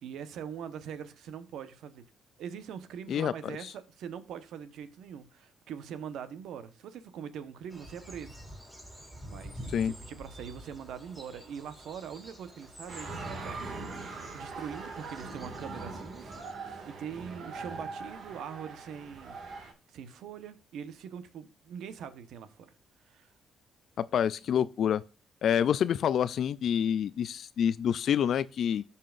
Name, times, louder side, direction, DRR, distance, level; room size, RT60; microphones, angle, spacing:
voice 1, 0.0-2.0 2.4-8.4 9.2-13.1 13.4-13.6 14.3-19.4 19.9-22.7 23.0-23.3, right 8 dB, 80° right, 1.0 m, -42 dB
voice 2, 3.1-3.7 9.7-9.9 24.0-25.0 25.4-28.8, left 9 dB, 65° left, 0.3 m, -27 dB
sound 1, 7.7-16.5, equal, 10° right, 4.1 m, -48 dB
sound 2, 12.9-19.7, right 3 dB, 60° right, 1.9 m, -41 dB
14.5 x 5.6 x 2.5 m
cardioid pair, 90°, 0 cm